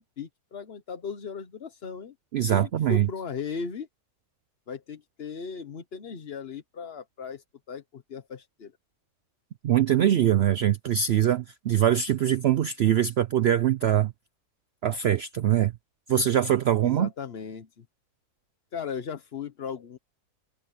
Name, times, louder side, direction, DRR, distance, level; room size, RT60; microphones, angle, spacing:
voice 1, 0.0-2.1 2.5-3.9 4.7-8.7 16.8-17.8 18.7-20.0, left 6 dB, 45° left, 1.1 m, -37 dB
voice 2, 2.3-3.1 9.6-14.1 14.8-15.7 16.1-17.1, right 10 dB, 85° right, 0.5 m, -23 dB
omnidirectional pair, 1.7 m